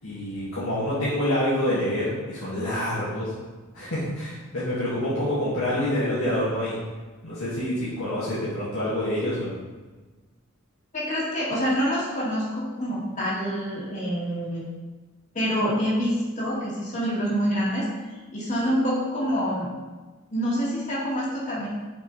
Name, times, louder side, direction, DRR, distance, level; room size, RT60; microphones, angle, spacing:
voice 1, 0.0-3.3 3.7-6.8 7.2-9.5, left 1 dB, 70° left, -10 dB, 2.0 m, -27 dB
voice 2, 10.9-14.7 15.3-17.9 18.3-19.7 20.3-21.7, equal, 35° left, -7 dB, 1.9 m, -26 dB
6.5 x 4.8 x 4.7 m, 1.3 s
head